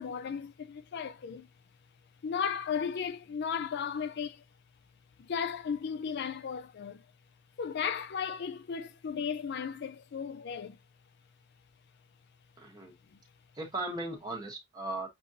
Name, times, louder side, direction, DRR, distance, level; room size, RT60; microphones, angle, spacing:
voice 1, 0.0-1.5 2.2-4.4 5.2-7.0 7.6-10.8 13.1-13.2, left 7 dB, 50° left, 0.4 m, -35 dB
voice 2, 12.6-13.0 13.5-15.1, right 2 dB, 20° right, 1.1 m, -37 dB
6.5 x 2.6 x 2.6 m
head